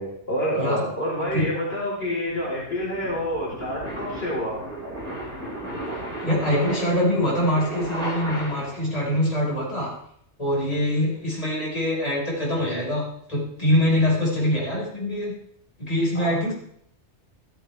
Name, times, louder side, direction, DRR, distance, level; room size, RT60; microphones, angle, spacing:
voice 1, 0.0-4.6 16.1-16.3, equal, 55° left, -6 dB, 4.6 m, -28 dB
sound 1, 1.7-8.9, right 1 dB, 50° right, 7.5 m, -34 dB
voice 2, 6.2-9.9 10.4-15.3 15.8-16.5, left 1 dB, 30° left, -5 dB, 5.1 m, -24 dB
14.0 x 14.0 x 3.5 m, 0.68 s
omnidirectional pair, 1.2 m